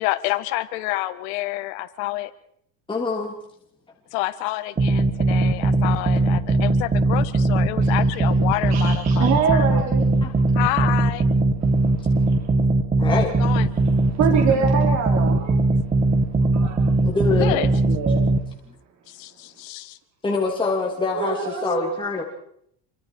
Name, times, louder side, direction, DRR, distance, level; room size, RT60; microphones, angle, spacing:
voice 1, 0.0-2.3 4.1-9.6 10.6-11.2 13.1-13.7 14.5-14.7 17.4-17.7 19.1-20.0, left 17 dB, 65° left, 11 dB, 1.8 m, -28 dB
voice 2, 2.9-3.3 10.2-10.3 13.0-13.3 17.0-17.6 20.2-22.2, left 3 dB, 10° left, -1 dB, 3.1 m, -24 dB
sound 1, 4.8-18.4, right 2 dB, 20° right, 1.8 m, -20 dB
voice 3, 8.7-10.1 11.6-12.5 13.8-15.6 16.5-16.8 17.5-18.2 21.1-22.0, right 6 dB, 40° right, 2 dB, 3.6 m, -26 dB
28.0 x 24.5 x 4.7 m, 0.69 s
supercardioid pair, 140°, 42 cm